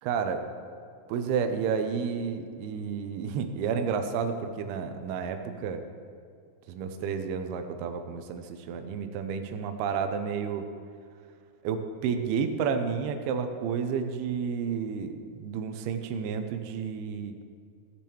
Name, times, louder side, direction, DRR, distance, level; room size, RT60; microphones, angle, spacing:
voice 1, 0.0-0.4 1.1-5.8 6.7-10.7 11.6-17.3, right 6 dB, 85° right, 7 dB, 2.6 m, -31 dB
16.5 x 10.0 x 3.0 m, 2.2 s
omnidirectional pair, 4.6 m